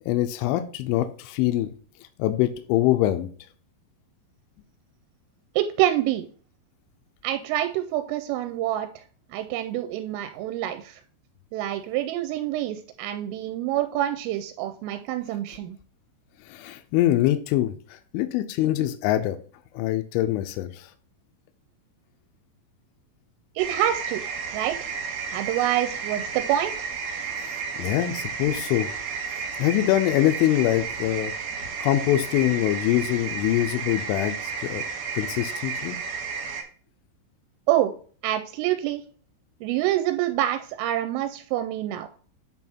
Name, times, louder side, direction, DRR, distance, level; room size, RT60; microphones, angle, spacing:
voice 1, 0.1-1.7 2.2-3.3 16.5-19.4 19.7-20.9 27.4-27.5 27.8-28.9 29.3-31.3 31.8-34.8 35.1-36.0, left 14 dB, 85° left, 7 dB, 2.9 m, -24 dB
voice 2, 5.6-6.2 7.2-9.0 9.3-11.0 11.5-15.8 23.6-24.2 24.5-24.9 25.3-26.9 37.7-37.9 38.2-39.0 39.6-42.1, right 13 dB, 90° right, 8 dB, 3.1 m, -26 dB
sound 1, 23.6-36.6, right 5 dB, 65° right, 3.5 m, -32 dB
8.5 x 3.5 x 4.2 m, 0.42 s
omnidirectional pair, 5.7 m